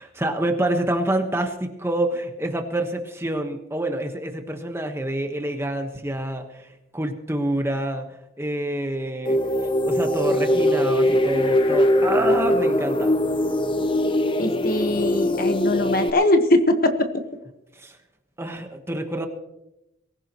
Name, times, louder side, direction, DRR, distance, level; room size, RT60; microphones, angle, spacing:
voice 1, 0.0-8.1 8.4-13.1 17.7-18.0 18.4-19.3, right 1 dB, 10° right, 5 dB, 1.2 m, -27 dB
sound 1, 9.2-16.1, left 1 dB, 25° left, 0.7 m, -21 dB
voice 2, 14.4-16.7, left 1 dB, 45° left, 7 dB, 1.2 m, -21 dB
23.0 x 15.0 x 3.0 m, 0.90 s
head